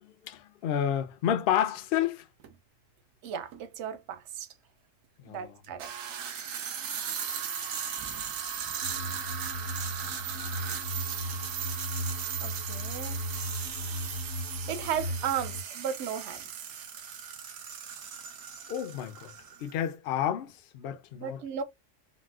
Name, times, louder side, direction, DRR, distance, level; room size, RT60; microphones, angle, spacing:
voice 1, 0.0-2.2 5.3-5.5 18.7-19.3 19.6-21.4, left 10 dB, 65° left, 0.6 m, -30 dB
sound 1, 2.4-2.5 3.5-3.6 5.6-19.8, right 8 dB, 90° right, 1.1 m, -37 dB
voice 2, 3.2-4.5 5.3-5.9 12.4-13.2 14.7-16.4 21.1-21.6, right 8 dB, 65° right, 0.9 m, -35 dB
sound 2, 8.8-15.6, left 1 dB, 85° left, 1.2 m, -37 dB
4.1 x 2.1 x 2.3 m
omnidirectional pair, 1.3 m